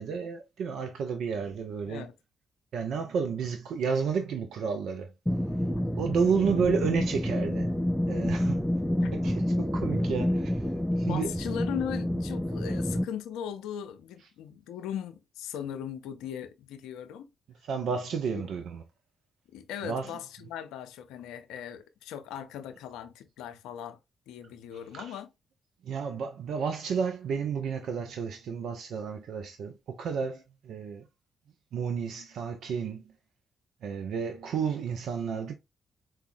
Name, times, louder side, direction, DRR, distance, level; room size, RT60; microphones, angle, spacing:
voice 1, 0.0-2.1 2.7-5.1 6.0-7.7 8.1-8.7 9.1-11.3 17.6-18.8 19.8-20.1 24.9-25.2 25.8-31.1 31.7-33.0 33.8-35.5, right 6 dB, 70° right, 0.4 m, -31 dB
sound 1, 5.3-13.0, left 1 dB, 5° left, 0.4 m, -28 dB
voice 2, 11.1-17.3 19.5-24.0 24.3-25.3, left 9 dB, 80° left, 0.4 m, -38 dB
4.5 x 2.0 x 2.5 m
hypercardioid pair, 40°, 0 cm